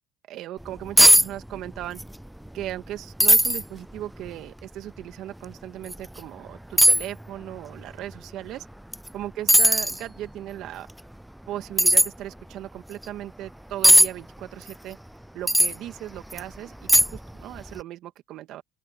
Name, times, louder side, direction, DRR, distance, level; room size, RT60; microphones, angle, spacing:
voice 1, 0.3-2.0 2.5-8.7 9.1-10.9 11.5-15.0 15.3-18.6, right 13 dB, 65° right, 2.4 m, -37 dB
sound 1, 0.6-0.7 1.0-1.3 1.5-2.1 2.5-2.6 3.2-3.6 4.3-4.4 5.9-6.0 6.8-7.1 8.9-9.1 9.5-10.0 11.8-12.1 13.8-14.1 15.5-15.7 16.3-16.4 16.9-17.3 17.6-17.7, equal, 5° right, 0.3 m, -16 dB
open air
supercardioid pair, 80°, 0 cm